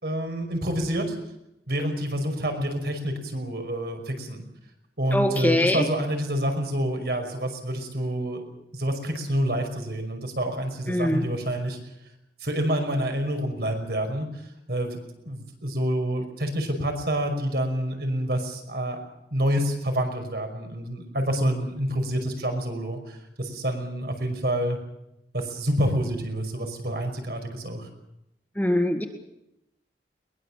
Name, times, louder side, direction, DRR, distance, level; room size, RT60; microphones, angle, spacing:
voice 1, 0.0-1.2 1.7-4.4 5.0-8.4 8.7-11.8 12.4-14.4 14.7-15.0 15.2-19.0 19.3-24.8 25.3-27.9, right 1 dB, 65° right, 5 dB, 5.5 m, -28 dB
voice 2, 5.1-5.9 10.9-11.3 28.6-29.0, left 1 dB, 10° left, 4 dB, 1.9 m, -23 dB
22.0 x 21.0 x 7.4 m, 0.84 s
head